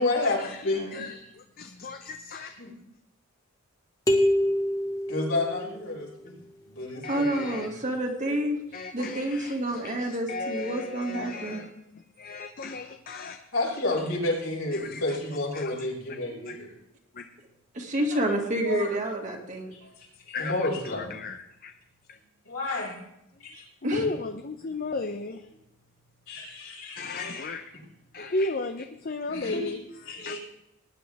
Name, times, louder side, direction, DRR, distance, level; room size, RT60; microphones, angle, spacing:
voice 1, 0.0-0.9 2.4-2.7 5.1-6.4 6.7-7.6 13.5-16.7 18.1-18.3 18.6-18.9 19.8-19.9 20.3-21.1 22.5-23.0 23.4-23.7 26.3-27.5 27.7-27.8 28.2-28.3 29.3-29.8 30.1-30.4, left 2 dB, 75° left, -3 dB, 5.4 m, -31 dB
voice 2, 0.7-1.0 7.1-8.6 8.9-11.6 17.7-19.7 23.8-24.1, right 1 dB, 35° right, 1 dB, 2.0 m, -29 dB
voice 3, 1.8-2.5 7.0-7.7 8.7-11.7 12.2-13.4 14.7-15.0 15.5-15.9 16.5-16.6 17.2-17.3 20.3-20.5 20.9-21.7 23.8-25.4 27.0-27.6 28.1-29.8 30.1-30.4, left 3 dB, 45° left, 7 dB, 0.7 m, -34 dB
sound 1, 4.1-6.0, equal, 15° left, 1.6 m, -25 dB
19.5 x 10.0 x 3.5 m, 0.84 s
head